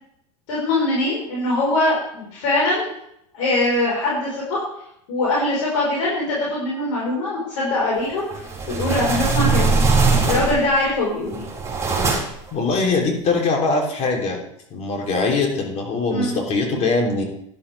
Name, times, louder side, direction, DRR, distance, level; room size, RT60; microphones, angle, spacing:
voice 1, 0.5-2.9 3.3-4.6 5.1-8.4 8.7-9.8 10.3-11.4 16.1-16.4, left 2 dB, 70° left, -5 dB, 4.9 m, -22 dB
sound 1, 8.3-10.8 11.3-12.5, right 4 dB, 15° right, 4.8 m, -20 dB
voice 2, 12.5-14.4 14.7-17.2, left 3 dB, 40° left, 1 dB, 3.5 m, -22 dB
11.5 x 11.5 x 3.5 m, 0.73 s
hypercardioid pair, 95°, 17 cm